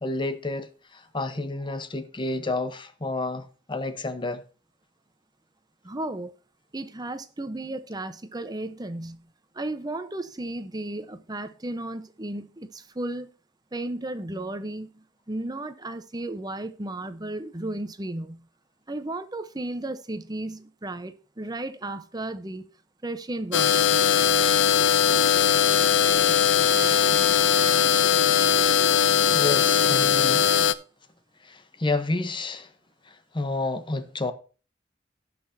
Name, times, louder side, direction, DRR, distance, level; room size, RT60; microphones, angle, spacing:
voice 1, 0.0-4.4 29.3-30.5 31.4-32.7 33.1-34.3, left 2 dB, 25° left, 0.9 m, -30 dB
voice 2, 5.8-6.3 6.7-9.2 9.5-13.3 13.7-18.4 18.9-22.7 23.0-23.9, right 2 dB, 20° right, 0.9 m, -34 dB
sound 1, 23.5-30.7, left 8 dB, 85° left, 0.6 m, -20 dB
17.5 x 6.0 x 2.7 m
head